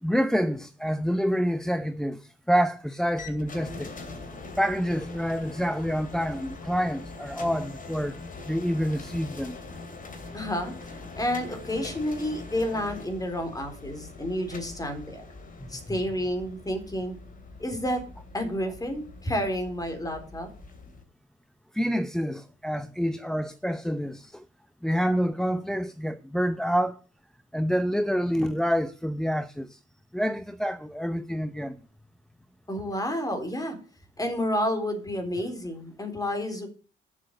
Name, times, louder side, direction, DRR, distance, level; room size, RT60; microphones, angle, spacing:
voice 1, 0.0-3.9 4.6-8.2 8.4-9.6 15.6-16.0 21.7-24.4 24.8-27.0 27.5-29.8 30.1-31.8, equal, ahead, 0.7 m, -27 dB
sound 1, 3.2-21.0, left 3 dB, 45° left, 2.9 m, -42 dB
voice 2, 10.3-10.9 11.2-15.3 15.7-17.2 17.6-18.0 18.3-20.5 32.7-33.8 34.2-36.7, equal, 20° left, 3.8 m, -30 dB
9.1 x 7.6 x 8.0 m
cardioid pair, 90°, 20 cm